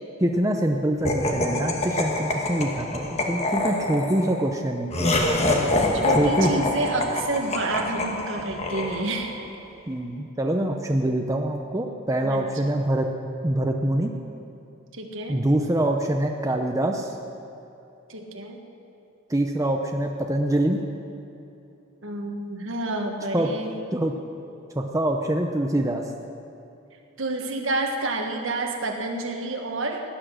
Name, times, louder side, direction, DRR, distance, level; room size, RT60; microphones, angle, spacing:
voice 1, 0.2-5.4 6.2-6.6 9.9-13.1 13.4-14.1 15.3-17.1 19.3-20.8 23.3-23.5 23.9-24.2 24.7-26.0, right 1 dB, 15° right, 2 dB, 0.6 m, -24 dB
Laughter, 1.1-9.4, left 2 dB, 30° left, 1.3 m, -26 dB
voice 2, 6.0-9.4 12.2-12.5 14.9-15.4 18.1-18.6 22.0-23.7 27.2-30.0, right 2 dB, 65° right, 2 dB, 1.6 m, -29 dB
17.0 x 10.0 x 6.4 m, 2.9 s
head